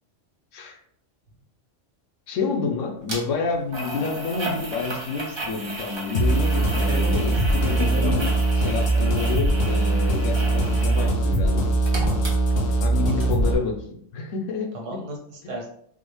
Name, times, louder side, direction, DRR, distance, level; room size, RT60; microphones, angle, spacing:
voice 1, 2.3-11.7 12.8-14.7, left 4 dB, 85° left, 2 dB, 1.0 m, -29 dB
sound 1, 3.1-3.2 3.7-11.2 11.5-12.9 13.2-13.3, right 1 dB, 30° right, 0.6 m, -34 dB
sound 2, 6.1-13.5, right 2 dB, 60° left, 0.8 m, -21 dB
voice 2, 6.7-8.3 14.7-15.7, right 1 dB, 80° right, -1 dB, 1.3 m, -34 dB
3.7 x 2.0 x 3.1 m, 0.68 s
omnidirectional pair, 1.3 m